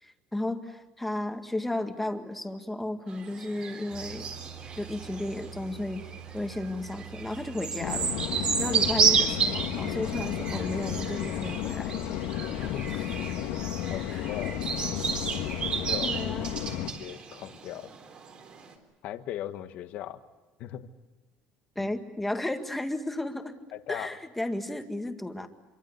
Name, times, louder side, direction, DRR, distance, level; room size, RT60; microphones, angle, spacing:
voice 1, 0.0-4.3 4.8-6.1 6.3-12.2 12.9-13.0 14.1-14.3 16.0-16.6 21.8-23.6 23.9-25.5, left 1 dB, 5° left, 6 dB, 1.9 m, -34 dB
sound 1, 3.1-18.7, right 6 dB, 35° right, 3.8 m, -32 dB
sound 2, 3.9-11.2, right 9 dB, 75° right, 6.0 m, -46 dB
sound 3, 7.8-16.9, left 11 dB, 90° left, 2.3 m, -33 dB
voice 2, 12.6-12.9 13.9-14.6 15.7-16.2 17.0-17.9 19.0-20.2 20.6-20.9 21.8-21.9 23.7-24.1, left 12 dB, 55° left, 9 dB, 1.4 m, -38 dB
26.0 x 24.0 x 8.2 m, 1.1 s
cardioid pair, 155°, 3 cm